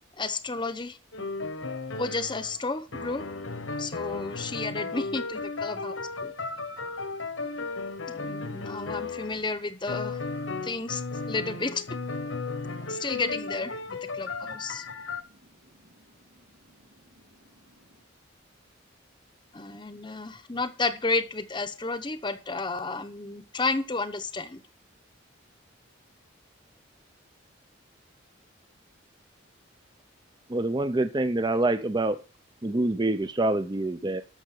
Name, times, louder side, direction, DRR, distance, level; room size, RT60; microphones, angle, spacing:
voice 1, 0.2-1.0 2.0-3.2 3.8-6.3 8.1-10.2 10.6-11.9 12.9-14.8 19.5-24.6, left 3 dB, 25° left, 0.9 m, -32 dB
sound 1, 1.1-2.6 2.9-9.5 9.9-15.2, left 3 dB, 80° left, 1.4 m, -35 dB
voice 2, 14.1-18.0, right 1 dB, 85° right, 2.3 m, -60 dB
voice 3, 30.5-32.2 32.6-34.2, right 2 dB, 20° right, 0.6 m, -26 dB
12.5 x 6.7 x 6.5 m
head